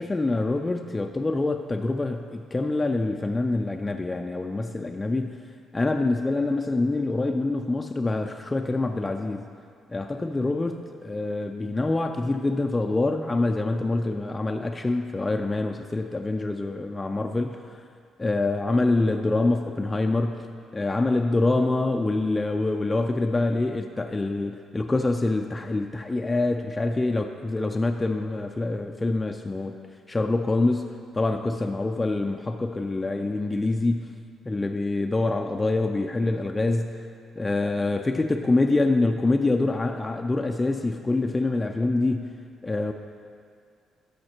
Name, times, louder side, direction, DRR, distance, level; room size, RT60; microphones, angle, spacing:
voice 1, 0.0-5.4 5.7-9.5 9.9-17.8 18.2-20.5 20.7-29.7 30.1-34.1 34.5-37.0 37.4-42.4 42.6-42.9, left 2 dB, 20° left, 4 dB, 0.4 m, -25 dB
13.0 x 5.1 x 4.4 m, 2.2 s
cardioid pair, 95°, 0 cm